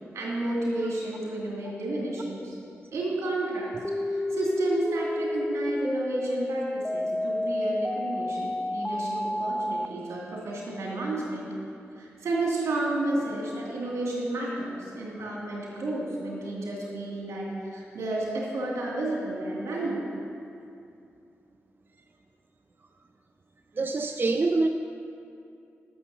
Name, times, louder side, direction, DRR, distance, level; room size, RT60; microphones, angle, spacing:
voice 1, 0.1-2.6 2.9-3.7 4.0-11.5 12.0-20.0, right 2 dB, 85° right, -4 dB, 2.6 m, -31 dB
sound 1, 3.8-9.9, left 1 dB, 10° left, 0.3 m, -30 dB
voice 2, 23.8-24.7, right 3 dB, 40° right, 6 dB, 0.5 m, -25 dB
10.0 x 7.0 x 7.1 m, 2.5 s
cardioid pair, 55°, 5 cm